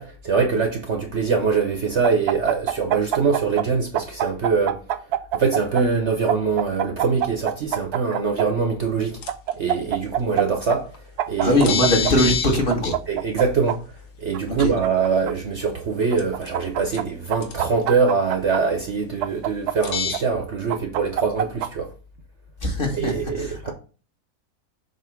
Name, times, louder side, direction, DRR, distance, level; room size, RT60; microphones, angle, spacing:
voice 1, 0.0-4.8 5.3-9.2 9.6-11.7 13.1-13.8 14.2-21.9 22.9-23.7, right 5 dB, 50° right, 1.0 m, -23 dB
sound 1, 2.0-3.7 4.0-5.8 6.3-8.5 9.3-10.4 10.7-10.8 11.2-12.1 12.7-13.8 14.3-15.3 16.1-17.0 17.3-18.6 19.2-20.2 20.7-21.7, right 11 dB, 80° right, 1.1 m, -25 dB
sound 2, 9.2-9.5 10.9-11.0 11.6-12.6 12.8-12.9 14.8-14.9 16.2-16.6 16.9-17.0 17.4-17.5 19.8-20.2, left 7 dB, 85° left, 1.7 m, -25 dB
voice 2, 11.4-12.9 14.5-14.7 22.6-23.1 23.4-23.7, left 1 dB, 35° left, 1.7 m, -21 dB
7.4 x 3.0 x 5.9 m
omnidirectional pair, 1.7 m